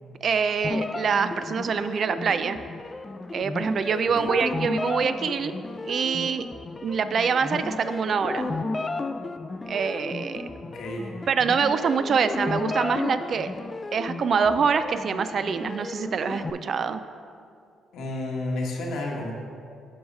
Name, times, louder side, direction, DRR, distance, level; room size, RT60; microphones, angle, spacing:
voice 1, 0.2-2.6 3.3-5.5 5.9-6.5 6.8-8.5 9.7-10.5 11.3-13.5 13.9-17.0, right 6 dB, 55° right, 11 dB, 0.4 m, -25 dB
sound 1, 0.6-16.5, left 3 dB, 25° left, 0.4 m, -33 dB
voice 2, 10.7-11.1 17.9-19.3, left 2 dB, 75° left, -1 dB, 1.3 m, -31 dB
7.8 x 4.8 x 5.4 m, 2.4 s
cardioid pair, 90°, 0 cm